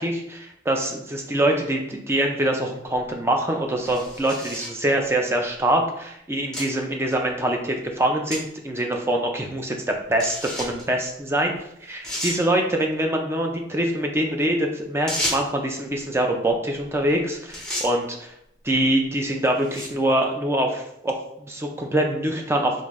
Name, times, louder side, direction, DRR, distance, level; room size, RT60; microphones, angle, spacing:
voice 1, 0.0-11.5 11.8-18.3 18.6-22.7, right 1 dB, 15° right, 2 dB, 0.4 m, -24 dB
sound 1, 3.8-4.8 5.6-5.7 6.5-6.7 7.1-7.2 8.3-8.4 8.8-8.9 10.2-10.8 11.6-11.7 12.0-12.4 15.1-15.6 17.0-17.2 17.5-17.9 18.7-18.9 19.6-20.0, equal, 5° left, 0.8 m, -31 dB
3.6 x 2.6 x 3.1 m, 0.76 s
head